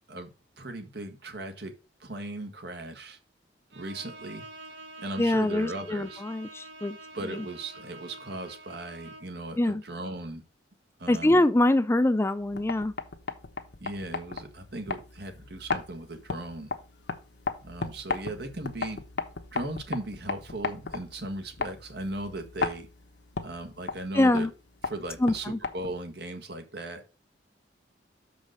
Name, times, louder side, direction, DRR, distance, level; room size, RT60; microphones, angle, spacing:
voice 1, 0.6-1.7 2.0-3.2 3.7-4.4 5.0-6.2 7.1-10.4 11.0-11.4 13.8-16.7 17.6-19.0 19.5-22.9 23.4-24.5 24.8-27.0, right 2 dB, 60° right, 1.6 m, -37 dB
Bowed string instrument, 3.7-9.4, right 2 dB, 80° right, 1.4 m, -47 dB
voice 2, 5.2-7.0 9.6-9.8 11.1-12.9 24.1-24.5 25.2-25.6, left 1 dB, 15° left, 0.4 m, -24 dB
sound 1, 12.4-26.1, left 4 dB, 65° left, 1.1 m, -37 dB
6.6 x 5.1 x 6.4 m
head